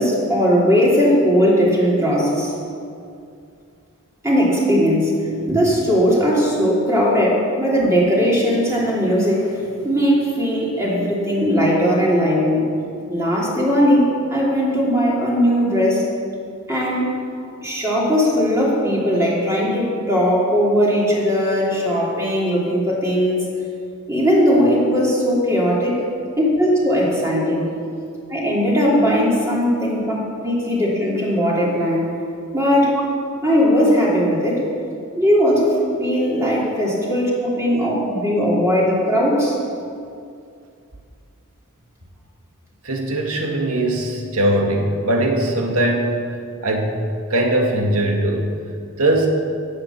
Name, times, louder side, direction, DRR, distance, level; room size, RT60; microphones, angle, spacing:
voice 1, 0.0-2.5 4.2-5.2 5.5-12.6 13.1-16.0 16.7-17.1 17.6-23.5 24.1-26.0 26.4-27.7 28.3-32.1 32.5-33.0 33.4-34.6 35.2-39.6, equal, 15° right, -5 dB, 3.0 m, -18 dB
voice 2, 42.8-46.2 46.6-47.0 47.3-48.5 49.0-49.3, right 1 dB, 75° right, 1 dB, 2.1 m, -20 dB
17.5 x 7.6 x 7.3 m, 2.4 s
head